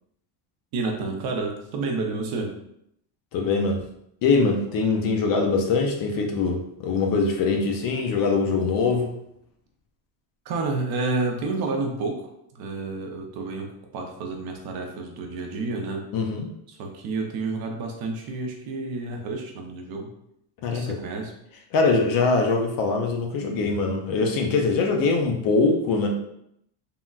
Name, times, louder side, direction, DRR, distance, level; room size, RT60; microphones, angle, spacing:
voice 1, 0.7-2.5 10.5-12.3 12.5-13.7 13.9-16.0 16.7-20.1 20.7-21.3, right 3 dB, 50° right, 2 dB, 0.6 m, -30 dB
voice 2, 3.3-3.8 4.2-9.1 16.1-16.5 20.6-21.0 21.7-26.1, left 4 dB, 50° left, 2 dB, 0.4 m, -23 dB
3.7 x 2.1 x 2.3 m, 0.75 s
cardioid pair, 145°, 48 cm